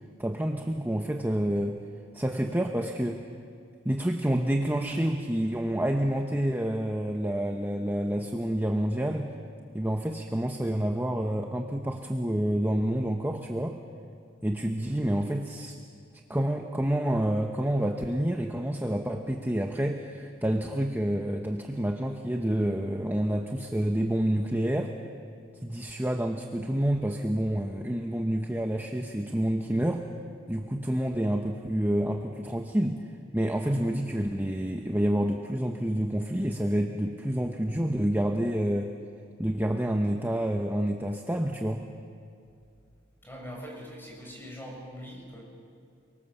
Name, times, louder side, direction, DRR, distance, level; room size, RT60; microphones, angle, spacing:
voice 1, 0.2-1.8 2.1-3.2 3.8-9.3 9.7-13.8 14.4-15.8 16.3-25.0 25.6-30.1 30.5-33.1 33.3-38.9 39.4-41.9, right 1 dB, 10° right, 3 dB, 1.1 m, -28 dB
voice 2, 43.2-45.4, equal, 10° left, -2 dB, 7.6 m, -42 dB
29.5 x 24.0 x 7.2 m, 2.4 s
head